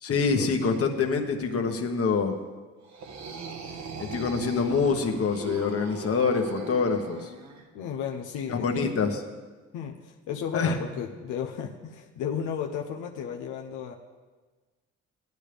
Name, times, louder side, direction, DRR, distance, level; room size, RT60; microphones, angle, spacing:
voice 1, 0.0-2.4 4.0-7.3 8.5-9.2 10.5-10.8, left 5 dB, 50° left, 4 dB, 1.4 m, -25 dB
sound 1, 2.8-7.6, right 4 dB, 65° right, 1.5 m, -39 dB
voice 2, 7.7-8.8 9.7-13.9, left 8 dB, 85° left, 2 dB, 0.8 m, -34 dB
15.0 x 10.5 x 3.5 m, 1.3 s
cardioid pair, 90°, 30 cm